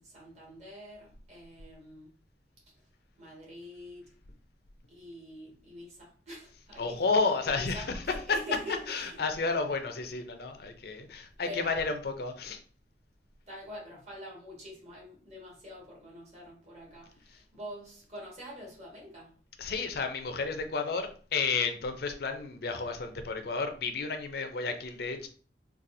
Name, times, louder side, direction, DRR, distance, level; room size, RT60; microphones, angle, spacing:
voice 1, 0.0-2.1 3.2-4.1 4.9-7.0 7.4-9.2 11.4-11.9 13.5-19.3, left 1 dB, 40° right, -3 dB, 1.4 m, -45 dB
voice 2, 6.8-8.0 8.9-12.6 19.6-25.3, left 4 dB, 55° left, 6 dB, 0.5 m, -32 dB
4.0 x 2.4 x 2.6 m, 0.42 s
head